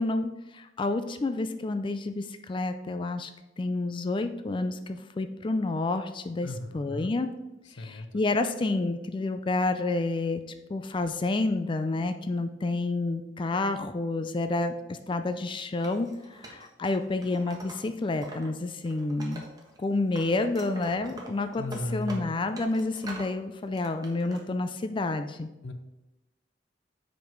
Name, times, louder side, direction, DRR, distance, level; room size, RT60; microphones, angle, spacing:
voice 1, 0.0-3.3 3.6-7.3 7.8-10.4 10.7-19.4 19.8-21.6 21.9-25.5, left 2 dB, 30° left, 8 dB, 0.4 m, -29 dB
voice 2, 6.4-7.1 7.6-8.2 21.6-22.3 25.6-25.7, left 1 dB, 90° left, 8 dB, 0.8 m, -36 dB
Wood, 15.8-18.5 18.8-19.8 20.1-23.4 23.7-24.4, right 1 dB, 20° right, 1.3 m, -45 dB
7.4 x 5.1 x 4.6 m, 0.99 s
head